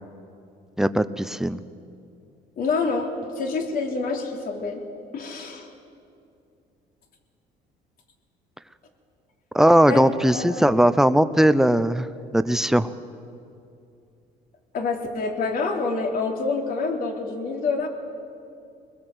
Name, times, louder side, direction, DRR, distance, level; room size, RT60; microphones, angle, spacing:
voice 1, 0.8-1.6 9.5-12.1 12.3-12.9, right 1 dB, 5° right, 12 dB, 0.8 m, -19 dB
voice 2, 2.6-4.8 5.1-5.7 9.9-10.0 10.3-10.8 14.7-17.9, left 4 dB, 60° left, 2 dB, 3.5 m, -27 dB
23.5 x 20.5 x 8.0 m, 2.6 s
cardioid pair, 110°, 17 cm